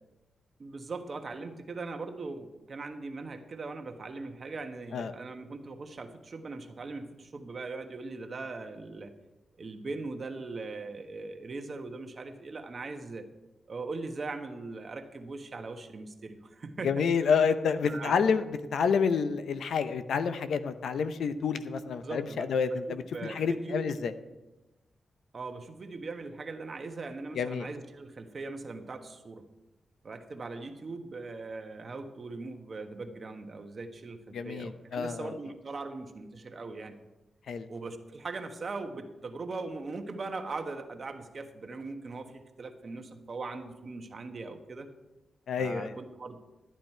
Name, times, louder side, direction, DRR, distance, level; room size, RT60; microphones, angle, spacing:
voice 1, 0.6-9.1 9.6-13.3 13.7-17.0 17.9-18.1 21.8-22.8 23.1-23.8 25.3-29.4 30.0-37.0 37.7-44.9 45.6-46.4, right 3 dB, 50° right, 6 dB, 1.3 m, -40 dB
voice 2, 16.8-24.1 27.3-27.7 34.3-35.3 37.5-37.7 45.5-45.9, left 6 dB, 80° left, 11 dB, 0.7 m, -29 dB
12.5 x 9.3 x 4.5 m, 1.0 s
cardioid pair, 70°, 0 cm